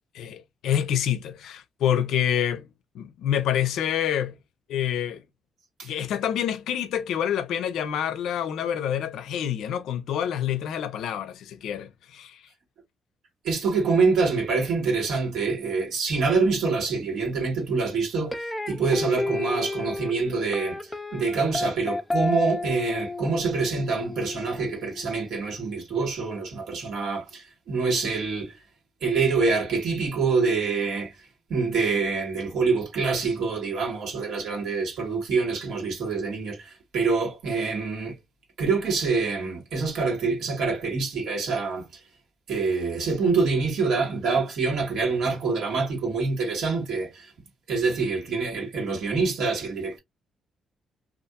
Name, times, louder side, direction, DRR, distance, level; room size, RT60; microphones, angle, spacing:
voice 1, 0.1-2.7 2.9-4.3 4.7-5.2 5.8-12.4, left 10 dB, 80° left, 0.4 m, -27 dB
voice 2, 13.4-28.6 29.0-31.2 31.5-38.2 38.6-42.0 42.5-47.3 47.7-50.0, right 4 dB, 75° right, 1.2 m, -26 dB
sound 1, 18.3-25.4, left 2 dB, 10° left, 0.4 m, -32 dB
2.7 x 2.4 x 2.2 m
cardioid pair, 90°, 0 cm